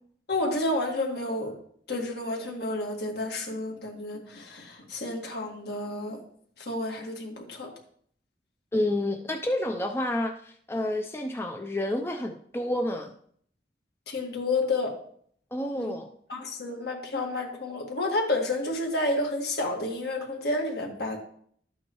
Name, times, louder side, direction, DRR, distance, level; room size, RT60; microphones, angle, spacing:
voice 1, 0.3-1.6 1.9-6.2 6.6-7.7 14.1-15.0 15.7-15.9 16.3-21.2, left 2 dB, 65° left, 1 dB, 1.9 m, -30 dB
voice 2, 8.7-13.1 15.5-16.1, left 1 dB, 15° left, 3 dB, 0.5 m, -29 dB
12.0 x 8.3 x 3.1 m, 0.62 s
head